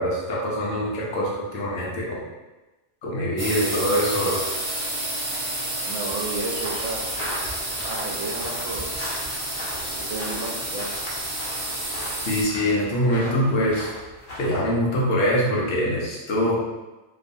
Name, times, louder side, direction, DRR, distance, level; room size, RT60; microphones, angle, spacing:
voice 1, 0.0-2.2 3.0-4.4 12.3-13.9 14.4-16.6, equal, 85° left, -4 dB, 1.1 m, -23 dB
sound 1, 3.4-12.4, right 1 dB, 45° right, 0.4 m, -30 dB
voice 2, 5.7-7.0 7.8-8.9 9.8-10.9, right 3 dB, 75° right, -1 dB, 0.9 m, -33 dB
sound 2, 6.5-14.7, left 1 dB, 55° left, 0.9 m, -38 dB
2.6 x 2.4 x 2.6 m, 1.1 s
omnidirectional pair, 1.3 m